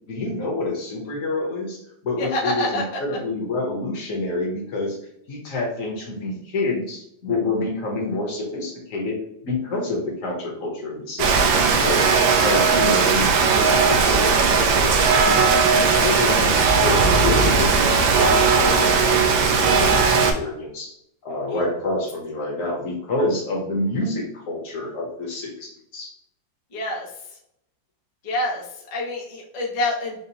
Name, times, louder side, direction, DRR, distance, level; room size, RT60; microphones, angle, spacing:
voice 1, 0.1-5.0 5.3-9.2 9.4-12.1 12.4-13.3 13.5-16.5 16.8-20.9 21.2-26.1, left 2 dB, 55° left, -1 dB, 1.1 m, -28 dB
voice 2, 2.2-3.0 16.2-16.5 21.5-21.6 26.7-27.1 28.2-30.2, left 1 dB, 75° left, -3 dB, 0.3 m, -27 dB
Rain, 11.2-20.3, right 5 dB, 90° right, 1.3 m, -18 dB
5.1 x 2.0 x 2.8 m, 0.75 s
omnidirectional pair, 2.0 m